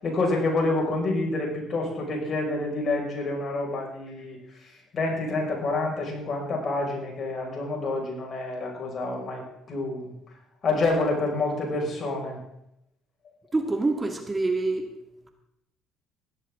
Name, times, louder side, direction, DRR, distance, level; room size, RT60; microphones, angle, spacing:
voice 1, 0.0-4.4 4.9-9.4 9.7-10.1 10.6-12.4, left 2 dB, 45° left, 0 dB, 5.6 m, -28 dB
voice 2, 13.5-14.9, right 3 dB, 20° right, 4 dB, 2.0 m, -26 dB
16.0 x 12.5 x 3.7 m, 0.81 s
supercardioid pair, 70°, 0 cm